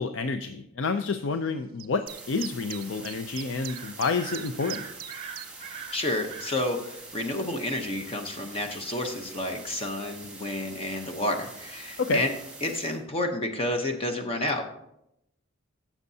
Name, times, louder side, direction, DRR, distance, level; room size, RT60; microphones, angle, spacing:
voice 1, 0.0-4.9 12.0-12.2, left 4 dB, 65° left, 8 dB, 0.5 m, -29 dB
sound 1, 1.8-5.5, right 13 dB, 45° right, 0.4 m, -41 dB
sound 2, 2.1-13.0, right 3 dB, 5° right, 2.2 m, -45 dB
sound 3, 3.7-6.6, right 7 dB, 30° right, 0.9 m, -42 dB
voice 2, 5.9-12.3 12.6-14.6, left 1 dB, 30° left, 4 dB, 0.8 m, -30 dB
15.0 x 7.2 x 2.7 m, 0.80 s
head